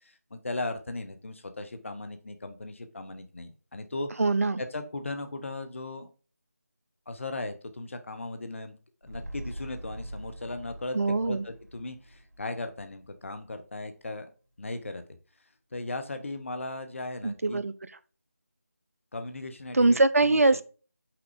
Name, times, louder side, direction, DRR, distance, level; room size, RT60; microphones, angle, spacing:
voice 1, 0.0-4.2 4.6-6.1 7.1-8.8 9.0-11.0 11.2-14.3 14.6-15.0 15.7-17.6 19.1-20.4, left 2 dB, 50° left, 8 dB, 0.9 m, -37 dB
voice 2, 4.2-4.6 10.9-11.4 17.2-17.7 19.7-20.6, right 2 dB, 60° right, 14 dB, 0.6 m, -23 dB
sound 1, 9.0-13.5 13.9-14.0, right 1 dB, 75° right, 1.8 m, -44 dB
5.9 x 3.8 x 4.8 m, 0.36 s
figure-of-eight pair, 165°, 9 cm